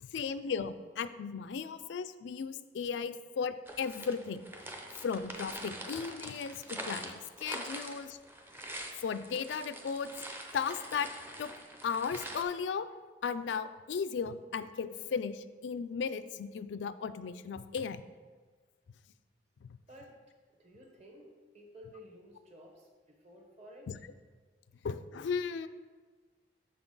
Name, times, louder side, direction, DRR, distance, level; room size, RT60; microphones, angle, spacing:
voice 1, 0.0-4.4 5.0-8.2 9.0-10.1 10.5-11.1 11.4-11.5 11.8-12.9 13.2-18.0 19.6-19.8 23.9-24.0 24.8-25.7, left 6 dB, 75° left, 13 dB, 0.3 m, -36 dB
sound 1, 3.7-12.4, right 1 dB, 10° right, 0.6 m, -44 dB
voice 2, 20.6-22.9 23.2-23.9, equal, 40° right, 1 dB, 1.2 m, -53 dB
6.6 x 5.8 x 3.9 m, 1.4 s
head